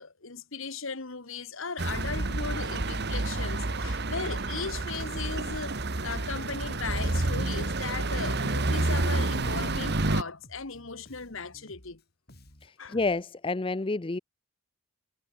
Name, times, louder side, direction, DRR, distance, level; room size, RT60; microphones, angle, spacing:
voice 1, 0.0-12.0 12.8-13.0, left 4 dB, 65° left, 1.6 m, -37 dB
sound 1, 1.8-10.2, right 2 dB, 50° right, 1.6 m, -29 dB
Bass guitar, 3.3-13.2, left 1 dB, 45° left, 4.5 m, -55 dB
voice 2, 12.6-14.2, left 3 dB, 25° left, 0.5 m, -29 dB
head